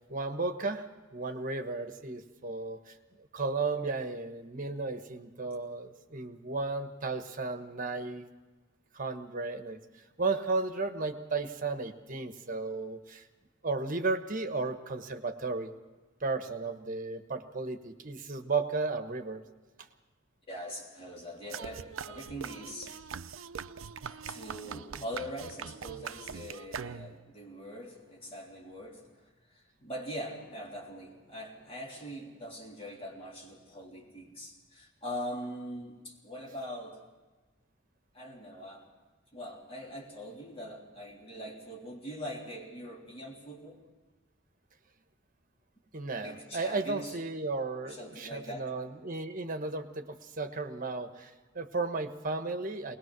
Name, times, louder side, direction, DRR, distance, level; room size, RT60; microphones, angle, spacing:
voice 1, 0.1-8.3 8.9-9.8 10.2-13.2 13.6-15.7 16.2-19.4 45.9-53.0, right 3 dB, 45° right, 7 dB, 1.3 m, -34 dB
voice 2, 20.5-23.0 24.0-37.0 38.1-38.9 39.3-43.8 46.2-47.2 47.8-48.7, equal, 30° left, -2 dB, 3.3 m, -42 dB
sound 1, 21.5-27.3, right 6 dB, 90° right, 0.5 m, -42 dB
21.5 x 20.0 x 6.1 m, 1.2 s
head